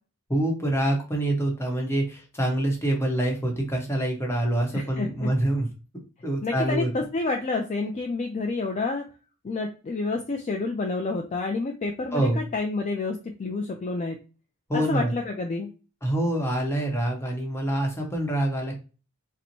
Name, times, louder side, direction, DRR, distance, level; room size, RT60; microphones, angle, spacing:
voice 1, 0.3-5.7 6.2-6.9 12.1-12.4 14.7-15.1 16.0-18.7, right 1 dB, 10° left, 0 dB, 0.9 m, -26 dB
voice 2, 4.7-5.3 6.4-9.1 9.4-14.2 14.7-15.7, left 3 dB, 30° left, 3 dB, 0.3 m, -29 dB
4.3 x 2.1 x 2.6 m, 0.33 s
head